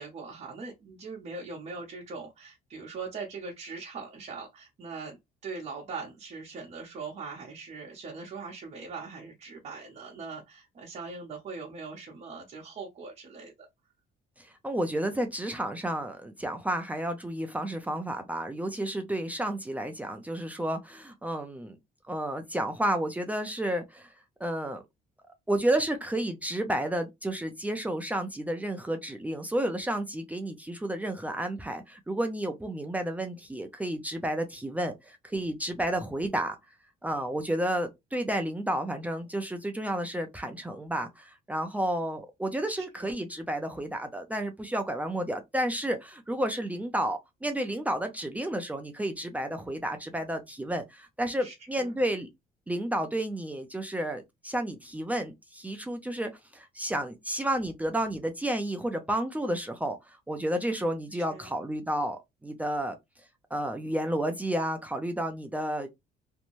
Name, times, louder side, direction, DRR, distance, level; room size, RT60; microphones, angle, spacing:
voice 1, 0.0-13.7 43.0-43.1 51.4-51.9 61.3-61.5, right 4 dB, 40° right, 0.8 m, -41 dB
voice 2, 14.4-21.8 22.1-24.1 24.4-24.8 25.5-36.6 37.0-52.3 52.7-63.0 63.5-65.9, right 1 dB, 10° right, 0.5 m, -31 dB
2.6 x 2.1 x 3.0 m
cardioid pair, 110°, 17 cm